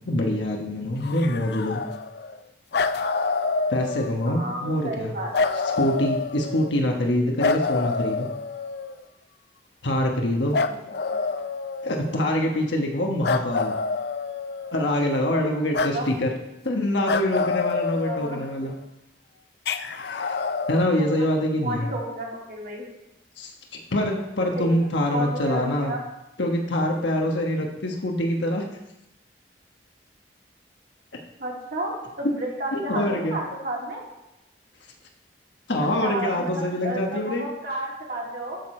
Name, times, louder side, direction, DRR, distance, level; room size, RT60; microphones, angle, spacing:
voice 1, 0.0-1.8 3.7-5.1 5.8-8.3 9.8-10.6 11.8-13.7 14.7-16.3 16.6-18.7 19.8-20.4 20.7-21.9 23.4-23.5 23.9-25.9 26.4-28.6 32.7-33.4 35.7-37.4, left 1 dB, 85° left, 1 dB, 1.2 m, -25 dB
sound 1, 1.0-2.4 2.7-4.4 5.3-6.8 7.4-9.0 10.5-12.2 13.2-14.9 15.7-16.0 17.1-18.7 19.7-20.9, left 4 dB, 65° left, 0.4 m, -27 dB
voice 2, 4.3-5.6 10.7-10.8 11.1-11.4 15.9-16.1 18.0-18.4 21.0-21.3 21.6-22.8 24.4-24.9 25.1-26.0 31.4-34.0 35.8-38.6, right 1 dB, 55° right, -3 dB, 2.5 m, -32 dB
12.0 x 6.7 x 4.4 m, 0.93 s
head